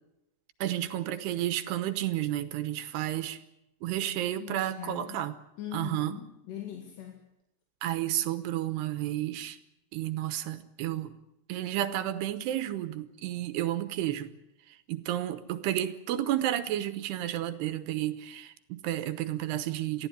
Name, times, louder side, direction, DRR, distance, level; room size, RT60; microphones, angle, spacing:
voice 1, 0.6-3.4 3.8-5.3 5.7-6.2 7.8-9.6 9.9-11.1 11.5-14.3 14.9-20.1, right 13 dB, 80° right, 12 dB, 3.0 m, -31 dB
voice 2, 4.4-5.2 5.6-7.2, left 10 dB, 80° left, 3 dB, 4.1 m, -41 dB
23.0 x 15.0 x 9.7 m, 0.87 s
omnidirectional pair, 4.8 m